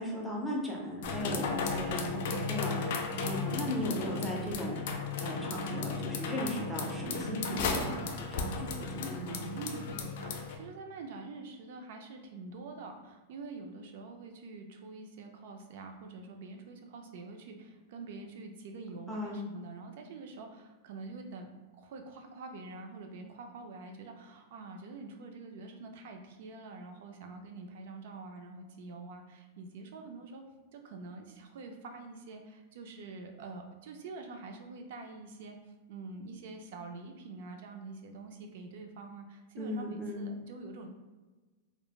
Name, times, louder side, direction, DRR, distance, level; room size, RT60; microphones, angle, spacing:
voice 1, 0.0-4.8 5.2-9.4 19.1-19.4 39.6-40.3, equal, ahead, -3 dB, 0.5 m, -37 dB
sound 1, 1.0-10.6, left 4 dB, 65° left, 0.3 m, -35 dB
voice 2, 9.5-21.5 21.8-30.4 30.7-40.9, right 3 dB, 65° right, 4 dB, 0.3 m, -46 dB
3.1 x 2.0 x 2.3 m, 1.3 s
supercardioid pair, 145°, 0 cm